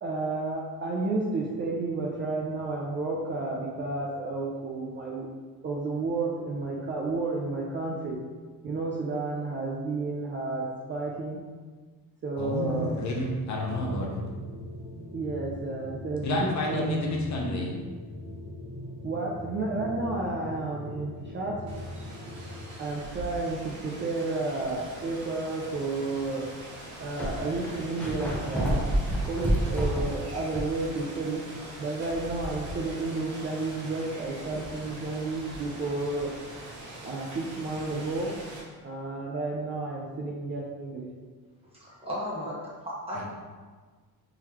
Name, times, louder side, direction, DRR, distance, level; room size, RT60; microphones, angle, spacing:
voice 1, 0.0-5.3 5.6-8.2 8.6-11.4 12.2-12.9 15.1-17.0 19.0-21.5 22.8-26.4 27.0-28.9 29.2-31.4 31.8-36.3 37.0-38.3 38.8-41.1, right 3 dB, 30° right, -4 dB, 0.4 m, -31 dB
voice 2, 12.4-14.2 16.2-17.7 43.1-43.3, left 1 dB, 50° left, -2 dB, 0.8 m, -30 dB
sound 1, 12.5-22.7, left 1 dB, 80° left, 1.4 m, -40 dB
Rain, 21.7-38.6, right 1 dB, 50° right, 1.1 m, -43 dB
sound 2, 24.6-24.9 25.6-25.7 26.6-26.7 26.8-30.8 31.2-31.3 34.8-34.9, equal, 5° left, 0.7 m, -29 dB
voice 3, 41.7-43.3, equal, 15° right, -7 dB, 1.1 m, -35 dB
3.8 x 3.1 x 2.9 m, 1.4 s
cardioid pair, 130°, 37 cm